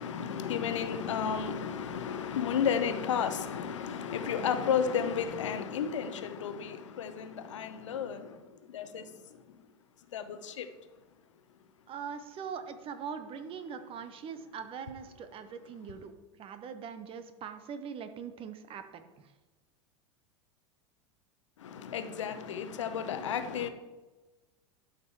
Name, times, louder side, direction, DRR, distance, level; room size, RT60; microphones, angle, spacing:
voice 1, 0.0-9.1 10.1-10.7 21.6-23.7, left 7 dB, 75° left, 0.9 m, -33 dB
voice 2, 11.9-19.3, right 7 dB, 35° right, 1.0 m, -42 dB
12.0 x 5.2 x 4.8 m
figure-of-eight pair, 85°, 16 cm